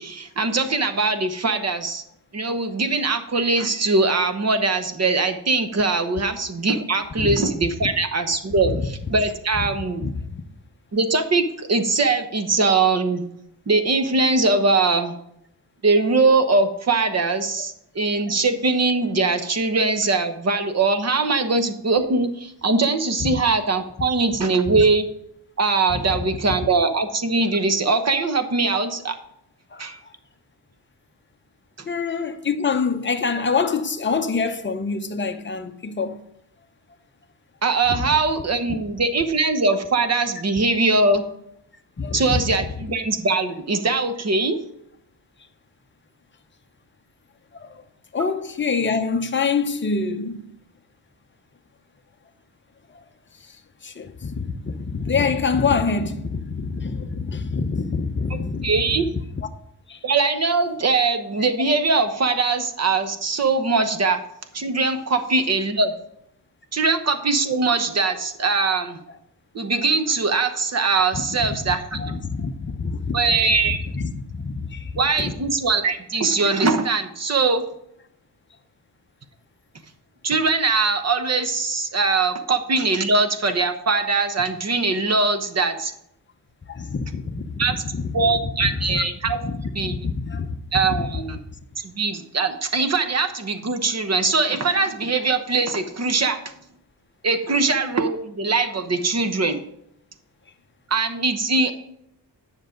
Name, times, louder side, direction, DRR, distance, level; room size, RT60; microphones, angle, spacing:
voice 1, 0.0-2.0 2.3-10.1 10.9-13.2 13.7-15.1 15.8-25.0 25.6-29.2 29.8-30.0 37.6-41.2 42.1-44.6 58.6-59.0 60.0-64.2 64.5-65.9 66.7-69.0 69.5-72.0 73.1-73.8 75.0-77.6 80.2-85.9 87.6-87.8 88.1-89.4 89.7-90.1 90.7-91.4 91.8-96.4 97.2-99.6 100.9-101.7, right 3 dB, 35° right, 1.0 m, -21 dB
voice 2, 10.0-10.4 23.2-23.3 24.7-24.8 25.9-26.0 29.7-29.8 31.9-36.2 38.0-38.1 38.7-38.8 42.0-42.4 47.5-47.7 48.1-50.5 53.8-59.0 59.4-59.5 59.9-60.0 71.1-73.2 73.7-75.3 86.7-88.2 88.6-90.6 90.9-91.0, left 5 dB, 25° left, 0.7 m, -26 dB
10.0 x 6.5 x 5.1 m
wide cardioid pair, 175°, 43 cm